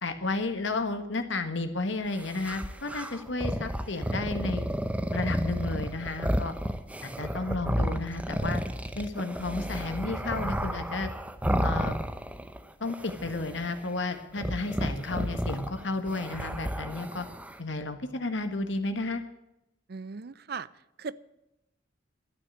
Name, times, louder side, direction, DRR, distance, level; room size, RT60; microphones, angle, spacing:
voice 1, 0.0-4.7 5.1-6.5 7.0-8.6 8.9-11.1 11.6-12.0 12.8-17.2 17.6-19.2, left 3 dB, 70° left, 8 dB, 1.5 m, -32 dB
sound 1, 2.1-12.6 12.8-13.8 14.4-17.6, equal, 5° right, 0.6 m, -32 dB
voice 2, 19.9-20.7 21.0-21.2, right 5 dB, 50° right, 19 dB, 0.5 m, -37 dB
12.5 x 9.4 x 8.3 m, 0.88 s
head